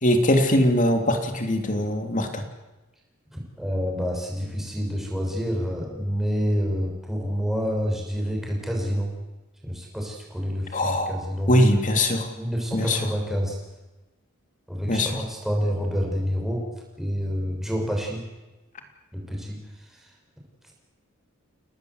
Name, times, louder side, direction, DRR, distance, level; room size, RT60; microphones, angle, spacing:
voice 1, 0.0-2.4 10.7-11.2 11.5-12.3 12.7-13.0 14.9-15.1, left 1 dB, 35° left, 5 dB, 3.1 m, -21 dB
voice 2, 3.3-9.1 9.6-11.8 12.3-13.6 14.7-16.6 17.0-18.2 19.1-19.6 20.0-20.1, equal, ahead, -1 dB, 6.3 m, -28 dB
29.5 x 19.0 x 8.1 m, 1.1 s
head